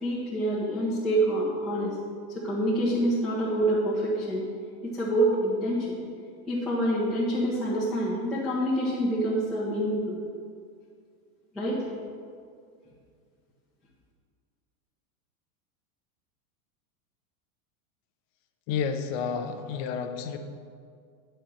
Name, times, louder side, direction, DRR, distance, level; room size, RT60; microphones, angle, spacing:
voice 1, 0.0-1.9 2.3-4.4 4.8-6.0 6.5-10.2 11.5-11.8, right 1 dB, ahead, -9 dB, 1.3 m, -26 dB
voice 2, 18.7-20.4, left 6 dB, 40° left, 6 dB, 0.8 m, -30 dB
10.5 x 4.5 x 6.4 m, 2.2 s
supercardioid pair, 155°, 43 cm